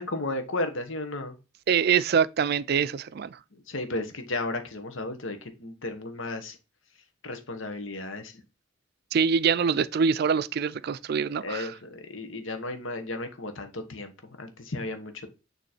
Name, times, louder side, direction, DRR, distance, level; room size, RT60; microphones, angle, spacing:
voice 1, 0.0-1.3 3.5-6.6 7.2-8.4 9.6-9.7 11.4-14.1 14.4-15.3, left 2 dB, 75° left, 1.4 m, -34 dB
voice 2, 1.7-3.4 9.1-11.7, right 6 dB, 50° right, 0.4 m, -24 dB
9.2 x 3.2 x 4.3 m
head